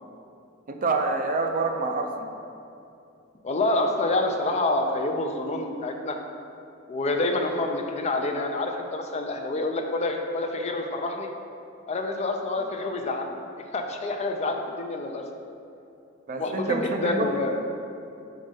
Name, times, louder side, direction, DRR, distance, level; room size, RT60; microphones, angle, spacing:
voice 1, 0.7-2.3 16.3-17.3, right 3 dB, 40° right, 4 dB, 0.4 m, -27 dB
voice 2, 3.4-6.2 6.9-11.3 11.9-13.4 13.7-15.2 16.4-17.6, left 2 dB, 35° left, 4 dB, 0.4 m, -27 dB
5.2 x 3.7 x 5.2 m, 2.7 s
head